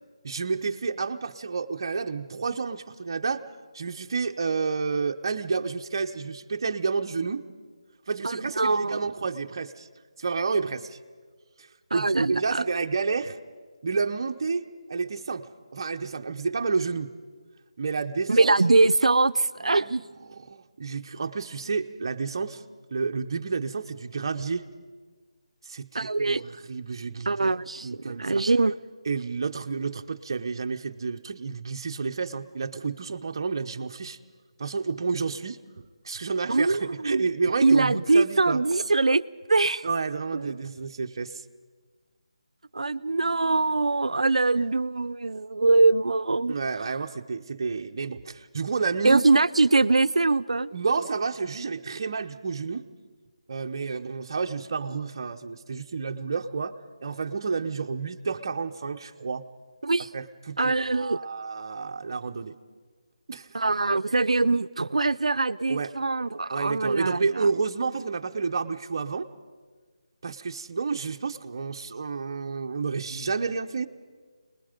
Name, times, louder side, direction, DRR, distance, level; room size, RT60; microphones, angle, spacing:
voice 1, 0.2-3.4 3.7-7.5 8.1-9.9 10.2-11.0 11.6-11.7 11.9-13.4 13.8-17.1 17.8-18.5 19.6-19.9 20.3-22.6 22.9-24.6 25.7-27.5 27.8-28.4 29.1-34.2 34.6-38.6 39.8-41.3 46.5-49.3 50.7-52.9 53.5-56.8 57.0-59.5 60.1-62.6 63.3-63.6 65.7-65.9 66.5-69.3 70.2-73.9, right 4 dB, 40° right, 6 dB, 1.0 m, -30 dB
voice 2, 8.2-9.1 11.9-12.6 18.3-20.1 25.9-26.4 27.3-28.7 36.5-37.3 37.6-39.9 40.3-40.6 42.7-46.5 49.0-50.7 59.8-60.1 60.6-61.2 63.5-67.5, right 3 dB, 85° right, 15 dB, 0.6 m, -23 dB
27.0 x 20.5 x 5.2 m, 1.5 s
figure-of-eight pair, 170°, 3 cm